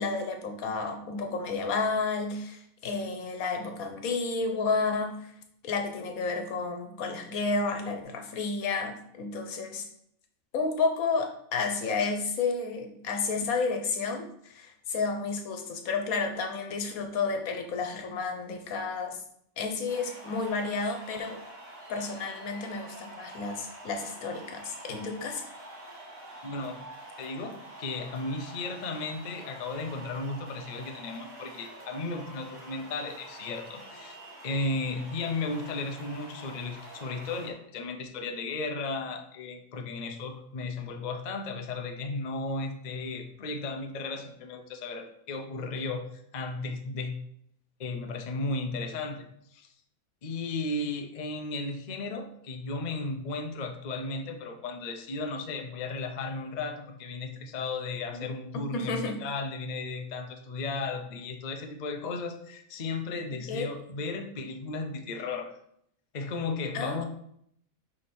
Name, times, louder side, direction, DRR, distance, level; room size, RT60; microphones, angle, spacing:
voice 1, 0.0-5.3 5.6-9.9 10.5-19.2 19.6-21.4 21.9-25.4 58.1-58.3 58.5-59.2 63.3-63.7 66.7-67.0, left 4 dB, 90° left, 5 dB, 1.3 m, -31 dB
sound 1, 19.9-37.5, right 1 dB, 55° right, 1.9 m, -47 dB
voice 2, 26.4-26.8 27.2-34.2 34.4-47.2 47.8-49.7 50.2-65.5 66.1-67.0, left 3 dB, 40° left, 5 dB, 0.6 m, -35 dB
5.0 x 4.9 x 4.3 m, 0.70 s
omnidirectional pair, 1.4 m